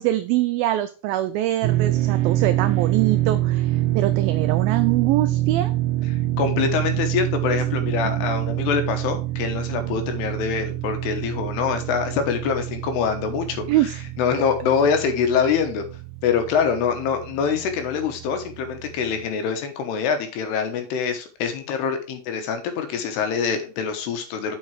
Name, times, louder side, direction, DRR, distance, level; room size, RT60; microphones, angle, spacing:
voice 1, 0.0-5.7 8.2-8.3 13.7-14.0, right 14 dB, 90° right, 11 dB, 2.0 m, -24 dB
sound 1, 1.6-19.3, right 15 dB, 75° right, 2.1 m, -26 dB
voice 2, 6.1-13.9 14.2-15.8 16.2-24.6, left 6 dB, 80° left, 7 dB, 3.2 m, -24 dB
7.5 x 5.4 x 4.7 m, 0.36 s
omnidirectional pair, 4.7 m